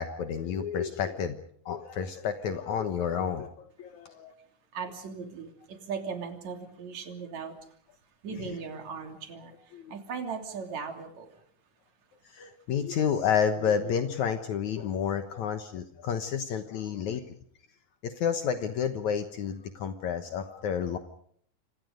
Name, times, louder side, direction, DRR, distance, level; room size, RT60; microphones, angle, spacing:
voice 1, 0.0-1.4 1.7-4.3 9.7-9.9 12.3-17.2 18.0-21.0, left 7 dB, 70° left, 7 dB, 2.5 m, -30 dB
voice 2, 4.7-7.6 8.2-11.4, right 5 dB, 60° right, 4 dB, 4.2 m, -38 dB
29.5 x 26.0 x 5.1 m, 0.64 s
omnidirectional pair, 3.7 m